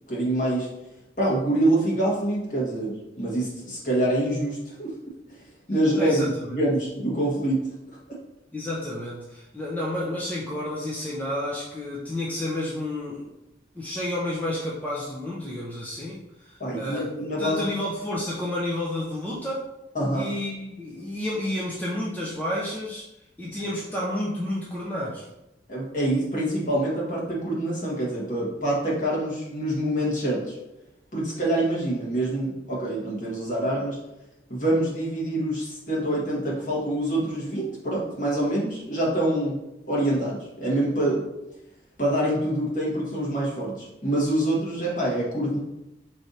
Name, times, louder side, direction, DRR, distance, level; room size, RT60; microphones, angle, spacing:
voice 1, 0.1-0.7 1.2-4.9 5.3-5.4 5.7-6.2 6.5-7.6 16.6-17.6 19.9-20.3 23.5-23.6 25.7-30.6 31.1-34.0 34.5-39.6 39.9-41.3 42.0-45.6, right 1 dB, 45° left, -5 dB, 1.4 m, -25 dB
voice 2, 6.0-6.6 8.5-13.3 13.7-19.7 20.1-23.1 23.4-25.3, left 1 dB, 10° left, -6 dB, 0.5 m, -31 dB
5.0 x 3.2 x 2.7 m, 0.92 s
head